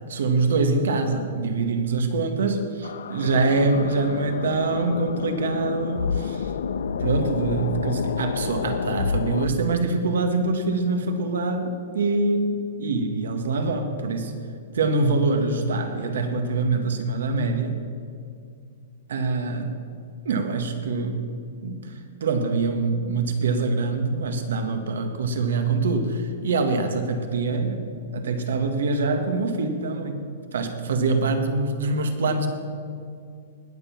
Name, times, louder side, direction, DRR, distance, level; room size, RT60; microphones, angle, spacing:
voice 1, 0.1-6.5 6.9-14.3 14.7-17.8 19.1-19.8 20.2-21.2 21.6-30.2 30.5-32.5, right 3 dB, 85° right, 7 dB, 1.7 m, -24 dB
sound 1, 2.8-9.5, left 6 dB, 85° left, 0.5 m, -29 dB
19.5 x 7.4 x 6.0 m, 2.4 s
hypercardioid pair, 165°, 0 cm